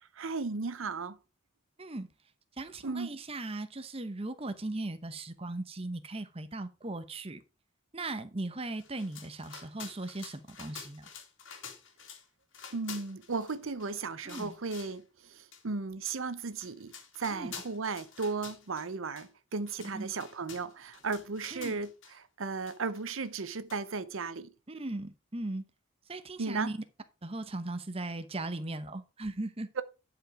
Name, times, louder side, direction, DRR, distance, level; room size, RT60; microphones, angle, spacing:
voice 1, 0.1-1.2 2.8-3.1 12.7-21.9 22.4-24.5 26.4-26.7, right 4 dB, 75° right, 0.8 m, -35 dB
voice 2, 2.6-7.4 7.9-11.1 14.2-14.5 17.3-17.5 19.9-20.1 21.5-21.7 24.7-25.6 26.1-26.8 27.2-29.7, right 2 dB, 30° right, 0.9 m, -38 dB
sound 1, 8.8-12.3 12.5-13.9 14.3-15.0 15.5-15.6 16.1-16.2 16.5-18.9 19.2-19.3 19.6-22.1 22.7-23.4 23.7-23.8, left 6 dB, 65° left, 2.3 m, -49 dB
11.0 x 5.0 x 4.8 m
head